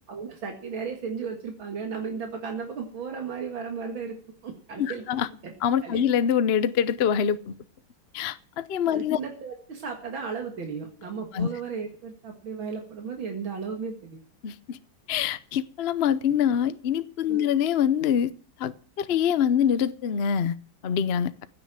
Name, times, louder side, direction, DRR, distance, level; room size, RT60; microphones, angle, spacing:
voice 1, 0.1-4.2 4.4-5.0 5.4-5.5 5.8-6.1 8.9-14.2 17.3-17.5, right 5 dB, 75° right, 2.6 m, -35 dB
voice 2, 4.8-5.3 5.6-7.5 8.1-9.2 11.3-11.5 14.4-14.8 15.1-18.3 18.6-18.7 19.0-20.5 20.8-21.3, left 8 dB, 65° left, 0.6 m, -24 dB
15.5 x 8.5 x 7.4 m
omnidirectional pair, 2.2 m